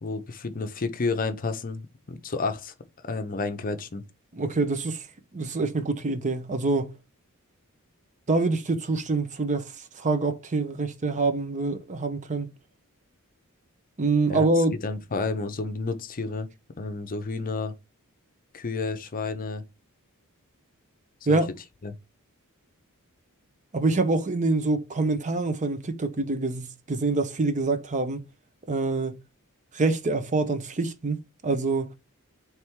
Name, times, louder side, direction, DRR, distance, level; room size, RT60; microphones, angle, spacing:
voice 1, 0.0-2.7 3.0-4.0 14.3-14.4 14.8-16.5 16.8-17.7 18.5-19.6 21.3-21.4 21.8-21.9, left 3 dB, 40° left, 0.6 m, -30 dB
voice 2, 4.3-5.1 5.3-6.9 8.3-12.5 14.0-14.7 21.3-21.5 23.7-28.2 28.7-29.1 29.7-31.9, right 3 dB, 35° right, 0.6 m, -25 dB
3.4 x 3.3 x 4.5 m
head